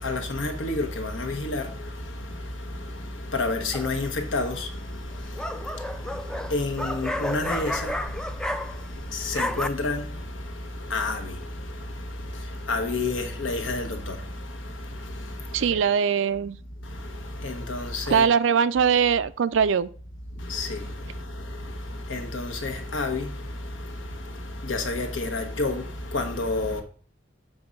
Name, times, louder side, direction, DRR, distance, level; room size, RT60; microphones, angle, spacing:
voice 1, 0.0-15.8 16.8-18.3 20.3-26.8, left 2 dB, 80° left, 1.2 m, -31 dB
sound 1, 3.7-4.2 5.1-9.0 9.2-9.7, left 1 dB, 5° left, 0.4 m, -31 dB
voice 2, 15.5-16.6 18.1-19.9, right 7 dB, 80° right, 0.4 m, -21 dB
7.0 x 3.8 x 5.3 m
head